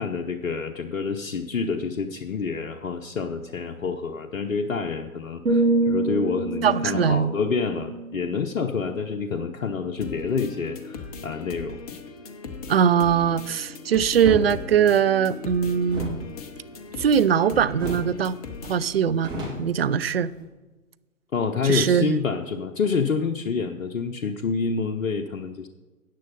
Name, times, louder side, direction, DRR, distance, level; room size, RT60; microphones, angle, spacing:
voice 1, 0.0-11.8 21.3-25.7, left 5 dB, 60° left, 4 dB, 0.9 m, -28 dB
sound 1, 5.5-9.4 9.8-10.1, right 2 dB, 80° right, 2.7 m, -27 dB
voice 2, 6.6-7.3 12.7-16.2 17.0-18.3 18.6-19.3 19.6-20.3 21.6-22.2, right 8 dB, 45° right, 14 dB, 0.5 m, -21 dB
sound 2, 10.0-19.0, left 5 dB, 25° left, 0.9 m, -39 dB
sound 3, 14.2-14.5 15.8-17.4 17.8-18.2 18.5-18.6 18.9-20.4, right 1 dB, 10° right, 2.2 m, -33 dB
14.0 x 9.2 x 4.1 m, 1.2 s
figure-of-eight pair, 130°, 43 cm